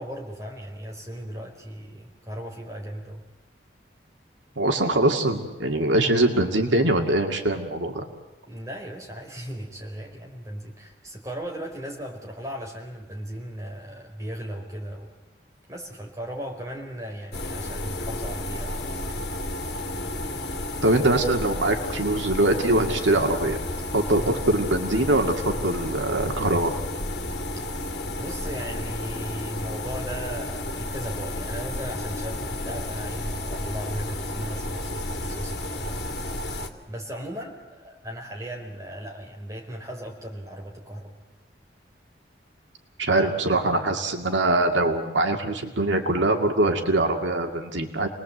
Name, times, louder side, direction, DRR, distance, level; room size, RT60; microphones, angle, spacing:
voice 1, 0.0-3.2 8.5-15.1 15.7-19.2 24.1-24.3 27.8-27.9 28.1-36.1 36.9-41.2, equal, 20° right, 0 dB, 4.5 m, -37 dB
voice 2, 4.6-8.1 20.8-23.6 23.9-26.7 43.0-48.1, right 2 dB, 85° right, 4 dB, 2.3 m, -23 dB
sound 1, 17.3-36.7, left 1 dB, 60° left, 2.4 m, -32 dB
29.5 x 20.5 x 7.9 m, 1.0 s
head